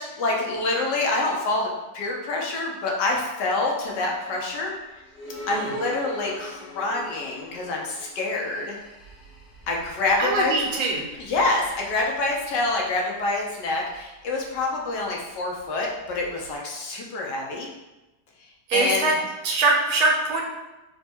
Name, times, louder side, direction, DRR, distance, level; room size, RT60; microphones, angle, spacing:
voice 1, 0.0-1.7 1.9-4.7 5.5-8.8 9.7-10.5 11.2-17.7 18.7-19.1, left 2 dB, 85° left, -1 dB, 1.4 m, -26 dB
sound 1, 3.8-16.6, equal, 50° left, 0.8 m, -44 dB
voice 2, 10.2-11.1 18.7-19.1 19.4-20.4, right 3 dB, 70° right, 0 dB, 1.1 m, -22 dB
4.2 x 2.2 x 4.3 m, 1.0 s
omnidirectional pair, 1.8 m